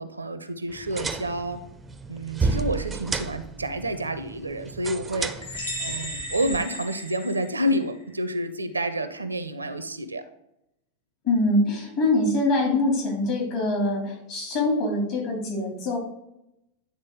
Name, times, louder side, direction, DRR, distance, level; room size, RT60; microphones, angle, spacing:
voice 1, 0.0-1.6 2.1-10.2, right 1 dB, 80° right, 11 dB, 0.5 m, -29 dB
sound 1, 0.7-6.7, right 4 dB, 15° right, 0.4 m, -32 dB
sound 2, 5.4-8.0, equal, 70° left, 1.6 m, -35 dB
voice 2, 11.2-16.0, left 2 dB, 45° left, -1 dB, 2.7 m, -24 dB
9.4 x 3.9 x 3.6 m, 0.84 s
figure-of-eight pair, 90°, 0 cm